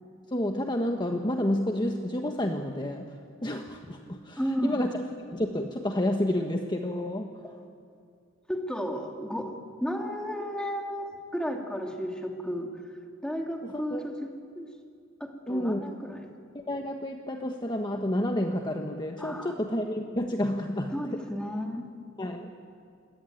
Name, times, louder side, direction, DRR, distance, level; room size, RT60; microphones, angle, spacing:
voice 1, 0.3-3.1 3.4-4.9 5.3-7.4 13.6-14.0 15.5-16.0 16.5-20.9 22.2-22.5, left 1 dB, 20° left, 4 dB, 1.3 m, -30 dB
voice 2, 4.4-4.9 7.4-7.6 8.5-12.7 13.2-14.3 14.5-14.7 15.2-16.3 19.2-19.5 20.9-21.8, equal, 5° left, 2 dB, 2.6 m, -33 dB
27.5 x 22.5 x 9.3 m, 2.4 s
head